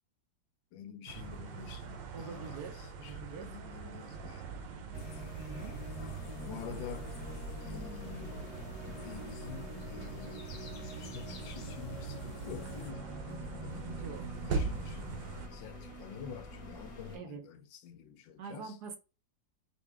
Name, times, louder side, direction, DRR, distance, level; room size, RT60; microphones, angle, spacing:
voice 1, 0.7-4.5 6.4-7.1 7.6-8.4 8.8-15.2 15.5-18.7, left 7 dB, 85° left, 1.4 m, -48 dB
sound 1, 1.1-15.5, right 4 dB, 85° right, 1.5 m, -42 dB
voice 2, 2.1-3.5 5.4-5.8 13.9-14.3 17.1-17.5 18.4-19.0, right 5 dB, 65° right, 1.2 m, -45 dB
sound 2, 4.9-12.9, left 6 dB, 60° left, 1.0 m, -53 dB
sound 3, 4.9-17.2, left 1 dB, 30° left, 0.6 m, -46 dB
5.7 x 2.3 x 3.4 m
omnidirectional pair, 2.0 m